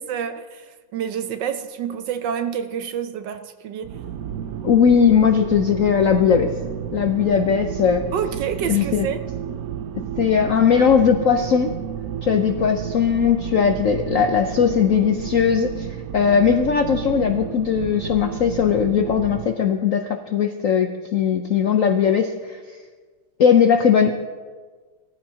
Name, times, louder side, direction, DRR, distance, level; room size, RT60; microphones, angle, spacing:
voice 1, 0.1-4.0 8.1-9.2, right 8 dB, 70° right, 1.3 m, -28 dB
sound 1, 3.8-19.5, right 9 dB, 85° right, 0.7 m, -31 dB
voice 2, 4.6-6.5 6.9-8.0 8.7-9.1 10.2-11.7 12.2-15.9 16.1-22.6 23.4-24.1, left 7 dB, 70° left, 0.7 m, -18 dB
20.0 x 14.5 x 2.8 m
omnidirectional pair, 2.2 m